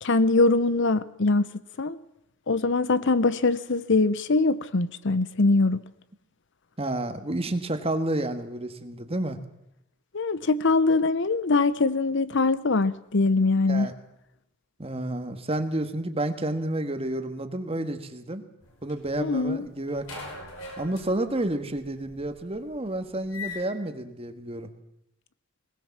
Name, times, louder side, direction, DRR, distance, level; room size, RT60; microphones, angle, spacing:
voice 1, 0.0-1.4 1.8-2.0 2.5-5.8 10.1-13.9 19.2-19.7, left 3 dB, 60° left, 0.7 m, -22 dB
voice 2, 6.8-9.4 13.7-13.9 14.8-18.4 18.8-20.1 20.8-24.7, right 1 dB, 25° right, 1.6 m, -30 dB
sound 1, 18.6-19.5 19.9-23.6, left 3 dB, 75° left, 5.7 m, -41 dB
21.0 x 19.0 x 7.2 m
head